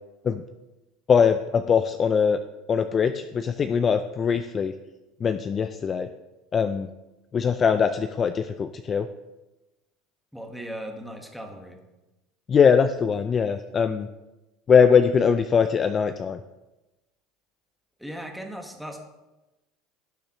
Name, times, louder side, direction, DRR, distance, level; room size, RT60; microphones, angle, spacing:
voice 1, 1.1-2.4 2.7-4.8 5.2-6.1 6.5-6.9 7.3-9.1 12.5-14.1 14.7-16.4, left 6 dB, 25° left, 10 dB, 0.4 m, -21 dB
voice 2, 10.3-11.8 18.0-19.0, equal, ahead, 2 dB, 1.5 m, -37 dB
17.5 x 7.1 x 3.1 m, 1.0 s
cardioid pair, 150°, 0 cm